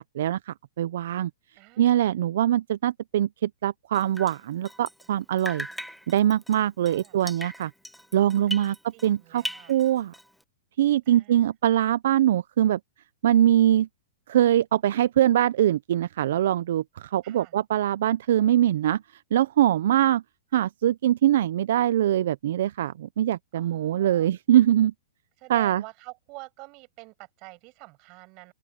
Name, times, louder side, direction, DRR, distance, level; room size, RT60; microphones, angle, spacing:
voice 1, 0.1-1.3 1.8-5.7 6.1-7.7 8.1-9.4 9.7-10.1 10.8-12.8 13.2-13.9 14.3-20.2 20.5-24.9 25.5-25.8, right 11 dB, 65° right, 0.4 m, -23 dB
voice 2, 1.6-2.2 6.9-7.2 8.5-9.8 11.1-11.5 17.2-17.5 23.5-24.3 25.4-28.5, right 26 dB, 35° right, 7.0 m, -47 dB
Drip, 3.9-5.1 5.4-9.1 9.4-10.4, equal, ahead, 0.9 m, -39 dB
open air
hypercardioid pair, 155°, 0 cm